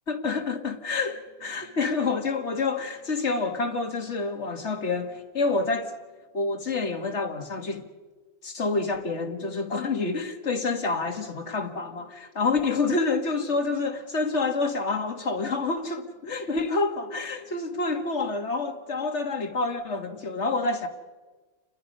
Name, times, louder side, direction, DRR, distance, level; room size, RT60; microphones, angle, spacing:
voice 1, 0.1-5.9 6.3-7.9 8.4-20.9, left 3 dB, 80° left, 2.2 m, -28 dB
30.0 x 21.5 x 5.4 m
omnidirectional pair, 1.2 m